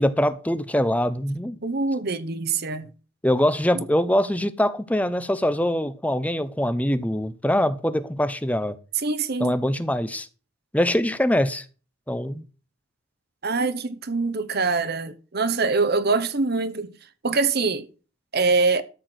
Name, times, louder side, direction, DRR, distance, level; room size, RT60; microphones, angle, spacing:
voice 1, 0.0-1.6 3.2-8.8 9.4-10.3 10.7-11.6 12.1-12.4, left 1 dB, 5° left, 0.7 m, -23 dB
voice 2, 1.6-2.9 9.0-9.6 13.4-16.9 17.2-17.9 18.3-18.8, right 3 dB, 50° right, 1.0 m, -24 dB
13.0 x 4.6 x 7.9 m
head